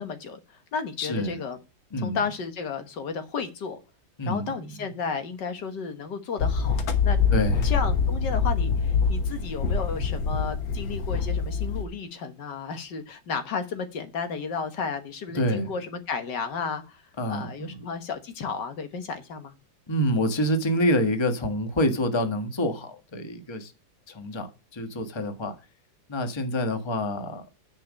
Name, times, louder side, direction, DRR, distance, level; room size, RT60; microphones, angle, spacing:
voice 1, 0.0-1.6 2.0-3.8 4.3-7.2 7.6-19.5, left 5 dB, 65° left, 1.9 m, -33 dB
voice 2, 1.0-1.4 1.9-2.2 4.2-4.9 7.3-7.7 15.3-15.7 17.2-17.8 19.9-23.7 24.1-25.5 26.1-27.5, left 1 dB, 15° left, 1.2 m, -27 dB
sound 1, 6.4-11.8, left 5 dB, 85° left, 2.0 m, -25 dB
10.0 x 5.3 x 6.2 m
omnidirectional pair, 2.0 m